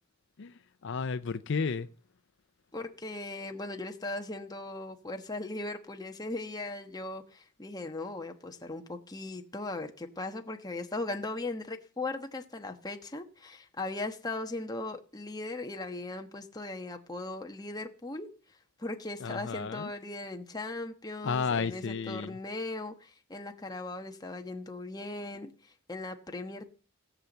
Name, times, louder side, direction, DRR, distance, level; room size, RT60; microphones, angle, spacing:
voice 1, 0.4-1.9 19.2-19.9 21.2-22.4, left 5 dB, 60° left, 0.5 m, -33 dB
voice 2, 2.7-18.3 18.8-26.7, left 2 dB, 20° left, 1.2 m, -38 dB
17.0 x 5.8 x 8.1 m
head